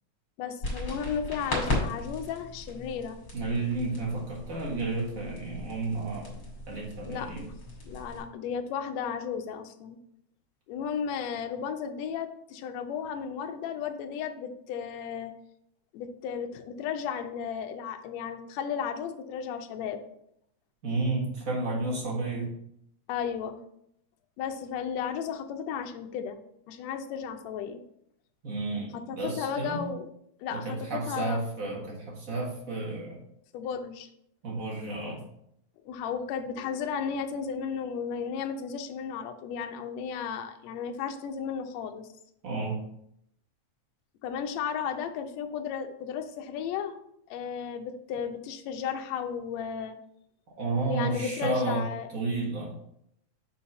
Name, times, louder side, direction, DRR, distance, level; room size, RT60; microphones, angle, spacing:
voice 1, 0.4-3.2 7.1-7.3 7.9-10.0 10.7-15.3 15.9-20.0 23.1-23.6 24.4-26.4 26.7-27.8 28.9-30.1 30.4-31.4 33.5-34.1 35.8-42.1 44.2-47.0 47.3-50.0 50.9-52.1, left 7 dB, 75° left, 6 dB, 1.7 m, -34 dB
sound 1, 0.6-8.2, left 2 dB, 30° left, 2.2 m, -36 dB
voice 2, 3.3-7.5 20.8-22.5 28.4-29.8 30.5-33.2 34.4-35.2 42.4-42.8 50.6-52.7, right 3 dB, 40° right, -2 dB, 1.2 m, -32 dB
4.6 x 4.3 x 5.7 m, 0.73 s
omnidirectional pair, 3.4 m